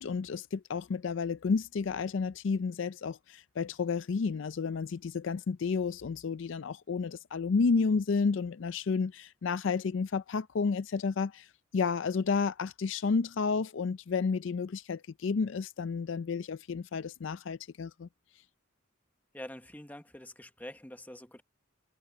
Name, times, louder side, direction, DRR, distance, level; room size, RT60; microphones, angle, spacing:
voice 1, 0.0-11.5 11.7-18.1, left 5 dB, 60° left, 0.4 m, -31 dB
voice 2, 19.3-21.4, left 1 dB, 10° left, 1.0 m, -45 dB
head